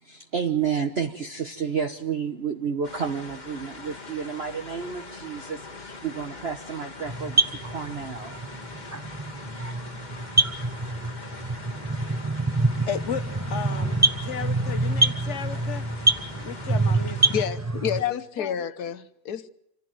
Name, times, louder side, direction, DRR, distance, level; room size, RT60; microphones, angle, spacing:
voice 1, 0.0-8.4, right 7 dB, 40° right, 1.3 m, -31 dB
sound 1, 2.8-17.5, left 3 dB, 25° left, 1.8 m, -42 dB
sound 2, 7.1-18.0, right 2 dB, 15° right, 0.5 m, -26 dB
voice 2, 12.5-15.9 16.4-17.3 18.0-18.5, left 8 dB, 45° left, 1.3 m, -34 dB
voice 3, 17.3-19.5, left 8 dB, 65° left, 1.6 m, -30 dB
27.0 x 15.0 x 9.1 m
omnidirectional pair, 1.8 m